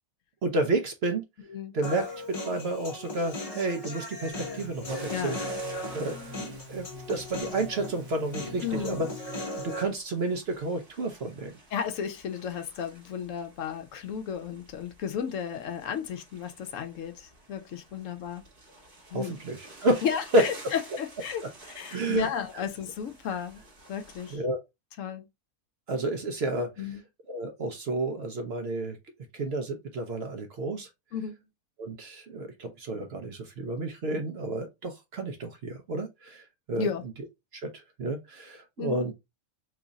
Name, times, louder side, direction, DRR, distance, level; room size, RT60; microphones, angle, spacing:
voice 1, 0.4-1.3 1.7-5.4 5.9-9.1 9.6-11.5 19.1-20.0 20.3-20.4 21.9-22.3 22.5-22.6 24.3-24.6 25.9-26.9 27.3-29.0 29.3-30.9 31.8-36.9 37.5-39.1, right 2 dB, 55° right, 0.8 m, -30 dB
Human voice, 1.8-9.8, left 1 dB, 30° left, 0.8 m, -38 dB
sound 1, 4.3-9.5, left 1 dB, 75° right, 1.3 m, -46 dB
sound 2, 4.9-24.4, right 2 dB, 40° right, 1.4 m, -51 dB
voice 2, 5.1-5.4 8.6-9.0 11.7-18.4 19.1-19.4 20.0-23.6 23.9-24.4 25.0-25.3 26.8-27.0 31.1-31.4 36.8-37.0 38.8-39.0, left 7 dB, 70° left, 0.9 m, -33 dB
3.1 x 2.4 x 3.9 m
omnidirectional pair, 1.5 m